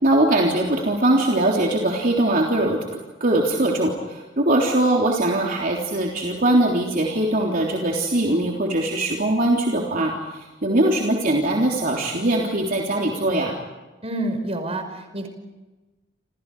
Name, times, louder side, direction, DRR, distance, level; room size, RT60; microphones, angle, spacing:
voice 1, 0.0-2.8 3.2-13.5, right 1 dB, 50° right, -1 dB, 3.6 m, -21 dB
voice 2, 14.0-15.3, right 1 dB, 35° right, 6 dB, 5.5 m, -28 dB
29.0 x 29.0 x 5.0 m, 1.2 s
head